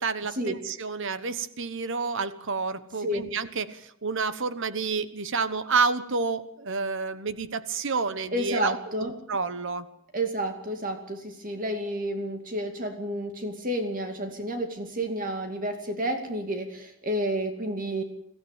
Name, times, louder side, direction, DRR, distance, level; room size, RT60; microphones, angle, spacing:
voice 1, 0.0-9.9, right 4 dB, 60° right, 13 dB, 1.2 m, -29 dB
voice 2, 8.3-9.2 10.1-18.0, right 1 dB, 40° right, 5 dB, 2.4 m, -30 dB
23.5 x 15.0 x 9.1 m, 0.77 s
head